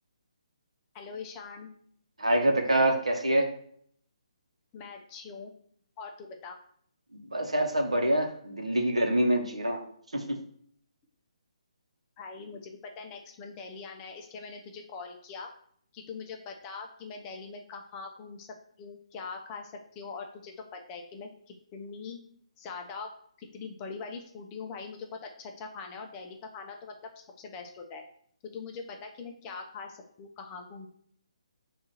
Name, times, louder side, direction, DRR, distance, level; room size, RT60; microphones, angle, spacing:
voice 1, 0.9-1.7 4.7-5.5 6.0-6.6 12.2-15.5 15.9-22.2 22.6-23.1 23.4-26.9 27.4-28.0 28.4-30.9, left 5 dB, 20° left, 3 dB, 0.4 m, -42 dB
voice 2, 2.2-3.5 7.3-9.8 10.1-10.4, right 1 dB, 70° right, 3 dB, 0.8 m, -25 dB
3.7 x 2.4 x 4.0 m, 0.62 s
figure-of-eight pair, 140°, 3 cm